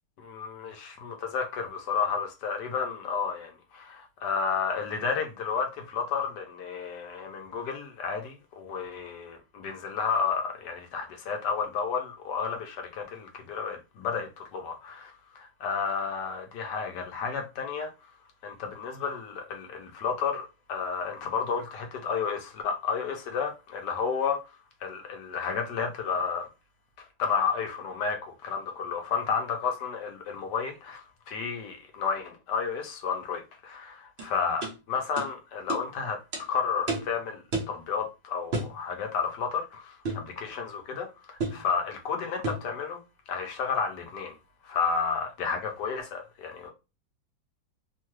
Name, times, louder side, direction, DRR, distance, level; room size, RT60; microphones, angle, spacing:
voice 1, 0.2-17.9 18.4-24.4 24.8-26.5 27.2-36.2 36.5-43.0 43.3-44.4 44.6-46.7, left 6 dB, 70° left, 1.1 m, -31 dB
sound 1, 34.2-34.3 34.6-34.8 35.2-35.3 35.7-35.8 36.3-36.4 36.9-37.1 37.5-37.8 38.5-38.8 40.0-40.3 41.4-41.6 42.4-42.7, right 2 dB, 80° right, 0.5 m, -31 dB
3.0 x 2.2 x 2.9 m
omnidirectional pair, 2.0 m